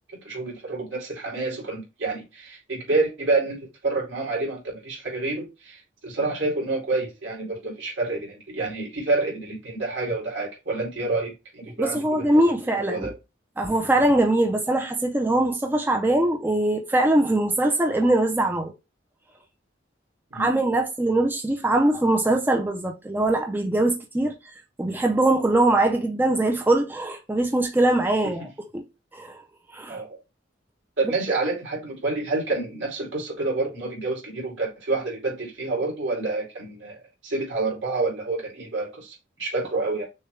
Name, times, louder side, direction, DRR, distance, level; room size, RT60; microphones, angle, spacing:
voice 1, 0.1-12.4 12.7-13.2 20.3-20.5 29.9-30.2 31.0-40.1, right 3 dB, 70° right, 2.7 m, -28 dB
voice 2, 11.8-13.1 13.6-18.7 20.3-24.4 24.8-28.9 29.1-29.4 29.7-30.0, right 1 dB, 10° right, 0.5 m, -22 dB
6.5 x 2.2 x 3.1 m
head